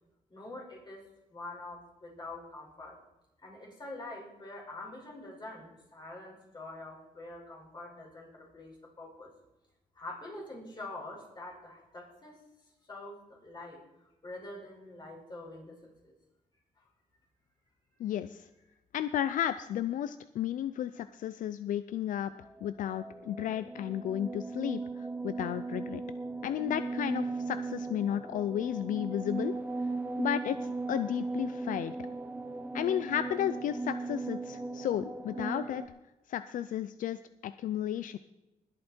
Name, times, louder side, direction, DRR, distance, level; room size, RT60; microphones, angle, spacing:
voice 1, 0.3-3.0 3.4-9.3 9.9-12.4 12.9-15.8 16.0-16.1 16.8-16.9, left 2 dB, 30° left, -1 dB, 5.5 m, -45 dB
voice 2, 18.0-18.5 18.9-26.0 26.4-29.5 30.2-32.0 32.7-35.8 36.3-38.2, left 10 dB, 75° left, 13 dB, 0.5 m, -33 dB
sound 1, 22.5-35.9, right 3 dB, 10° right, 0.9 m, -37 dB
20.0 x 8.7 x 4.5 m, 0.99 s
cardioid pair, 115°, 14 cm